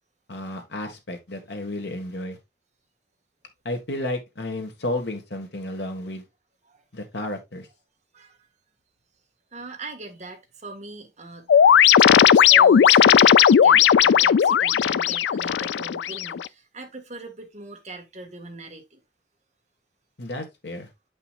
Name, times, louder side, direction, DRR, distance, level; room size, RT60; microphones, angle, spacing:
voice 1, 0.3-2.4 3.7-6.2 6.9-7.7 20.2-20.9, left 1 dB, 70° left, 1.8 m, -32 dB
voice 2, 9.5-11.5 12.0-19.0, right 2 dB, 45° right, 1.8 m, -41 dB
sound 1, 11.5-16.5, left 8 dB, 85° left, 0.3 m, -16 dB
8.0 x 5.5 x 2.5 m
head